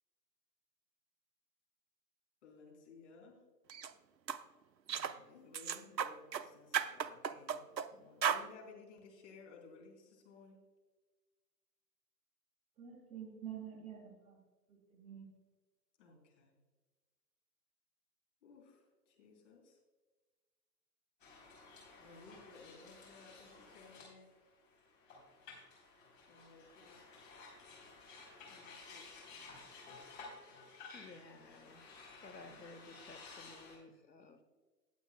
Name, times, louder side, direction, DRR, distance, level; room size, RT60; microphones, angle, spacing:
voice 1, 2.4-3.4 4.9-10.6 16.0-16.5 18.4-19.8 22.0-24.3 26.3-27.1 28.5-29.6, left 4 dB, 45° left, 3.5 m, -58 dB
sound 1, 3.7-3.9 4.3-4.4 4.9-5.2 5.5-6.4 6.7-7.9 8.2-8.5, right 7 dB, 85° right, 0.7 m, -35 dB
voice 2, 12.8-14.4 14.7-15.3, right 9 dB, 15° right, 1.8 m, -48 dB
sound 2, 21.2-33.8, left 4 dB, 20° left, 3.6 m, -55 dB
voice 3, 30.4-31.9 32.2-34.4, left 3 dB, 85° left, 1.1 m, -56 dB
19.0 x 8.1 x 2.2 m
figure-of-eight pair, 125°, 49 cm